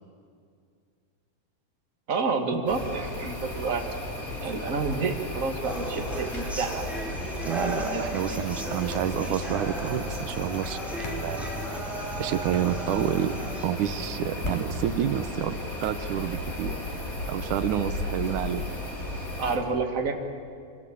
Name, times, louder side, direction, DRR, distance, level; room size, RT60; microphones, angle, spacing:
voice 1, 2.1-3.8 4.4-6.9 7.1-8.5 19.4-20.2, right 4 dB, 30° right, 4 dB, 1.5 m, -30 dB
sound 1, 2.7-19.6, left 1 dB, 25° left, 3.9 m, -35 dB
sound 2, 5.6-13.6, right 1 dB, ahead, 3.0 m, -37 dB
voice 2, 7.5-11.5 12.2-13.4 13.6-15.5 15.8-16.8 17.3-18.7, right 10 dB, 70° right, 11 dB, 2.1 m, -29 dB
sound 3, 9.2-16.6, right 1 dB, 65° left, 4.7 m, -44 dB
27.0 x 25.5 x 8.6 m, 2.2 s
omnidirectional pair, 4.2 m